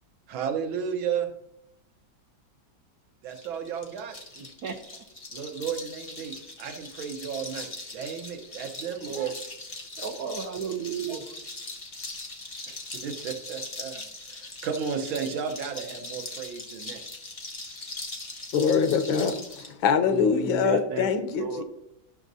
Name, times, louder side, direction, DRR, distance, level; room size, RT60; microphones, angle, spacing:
voice 1, 0.3-1.3 3.2-4.2 5.3-9.3 12.7-17.0, right 7 dB, 85° right, 5 dB, 1.7 m, -33 dB
sound 1, 3.3-19.7, left 2 dB, 60° left, 0.3 m, -41 dB
voice 2, 4.3-5.0 8.9-9.3 10.0-11.3 20.0-21.6, right 6 dB, 65° right, 7 dB, 1.0 m, -34 dB
voice 3, 18.5-21.6, left 6 dB, 85° left, 9 dB, 1.5 m, -24 dB
12.5 x 6.1 x 2.6 m, 0.83 s
omnidirectional pair, 2.1 m